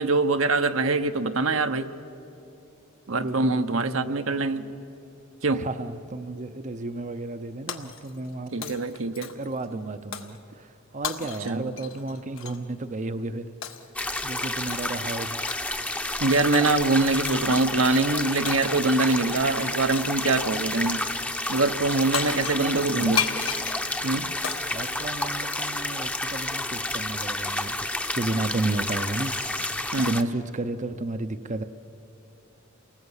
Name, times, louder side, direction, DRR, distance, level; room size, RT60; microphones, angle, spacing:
voice 1, 0.0-1.9 3.1-4.7 5.4-5.6 8.5-9.3 11.4-11.7 16.2-21.0 21.5-23.3 24.0-24.3 29.9-30.2, right 3 dB, 75° right, 8 dB, 1.0 m, -24 dB
voice 2, 3.2-4.3 5.5-8.8 9.4-13.5 14.2-15.4 22.6-23.2 24.7-31.6, right 2 dB, 35° right, 9 dB, 0.7 m, -32 dB
Shatter, 7.7-8.3 8.6-9.6 10.1-10.4 11.0-12.6 13.6-14.0 14.7-15.0 15.5-16.0 16.5-16.7 17.3-17.5 18.5-19.0 19.9-20.3 21.8-21.9 22.1-25.7, left 7 dB, 70° left, 1.4 m, -34 dB
sound 1, 14.0-30.2, left 1 dB, 5° left, 0.8 m, -30 dB
28.5 x 19.5 x 8.1 m, 2.7 s
head